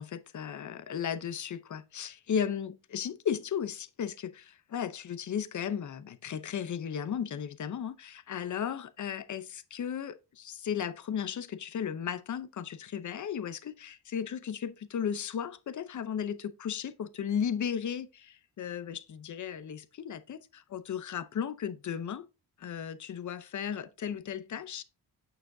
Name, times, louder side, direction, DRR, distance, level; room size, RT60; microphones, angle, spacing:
voice 1, 0.0-22.3 22.6-24.8, left 8 dB, 50° left, 0.7 m, -35 dB
8.7 x 7.0 x 2.7 m
wide cardioid pair, 140°, 39 cm